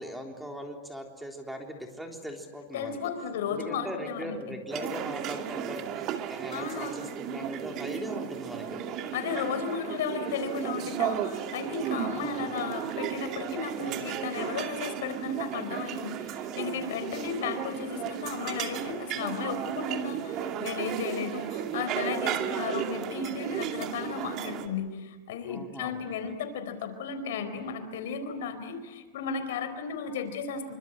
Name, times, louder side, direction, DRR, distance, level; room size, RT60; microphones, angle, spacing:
voice 1, 0.0-3.0 3.5-8.8 12.1-12.5 25.5-26.4, equal, 5° right, 3 dB, 3.6 m, -40 dB
voice 2, 2.7-4.4 6.5-7.0 9.1-30.7, left 6 dB, 80° left, 9 dB, 4.4 m, -34 dB
sound 1, 4.7-24.7, right 9 dB, 40° right, 2.3 m, -34 dB
27.0 x 24.5 x 9.0 m, 1.2 s
supercardioid pair, 140°, 0 cm